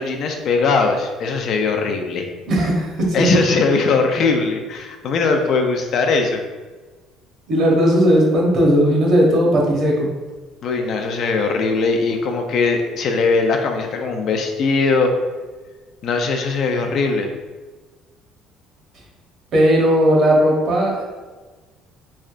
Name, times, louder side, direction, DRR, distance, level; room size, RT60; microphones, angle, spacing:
voice 1, 0.0-2.3 3.1-6.4 10.6-15.1 16.0-17.3, left 4 dB, 45° left, 4 dB, 0.4 m, -20 dB
voice 2, 2.5-3.4 7.5-10.1 19.5-21.0, equal, 45° right, -2 dB, 0.9 m, -16 dB
3.6 x 3.2 x 2.5 m, 1.3 s
cardioid pair, 165°, 0 cm